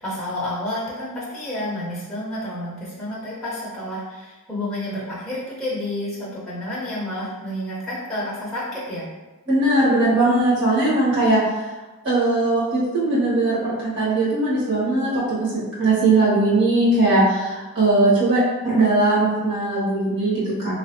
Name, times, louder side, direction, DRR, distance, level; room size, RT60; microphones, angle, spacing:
voice 1, 0.0-9.1, left 1 dB, ahead, -9 dB, 0.6 m, -30 dB
voice 2, 9.5-11.4 12.0-15.5 15.8-20.7, right 2 dB, 55° right, -8 dB, 1.4 m, -19 dB
3.1 x 2.3 x 2.6 m, 1.1 s
head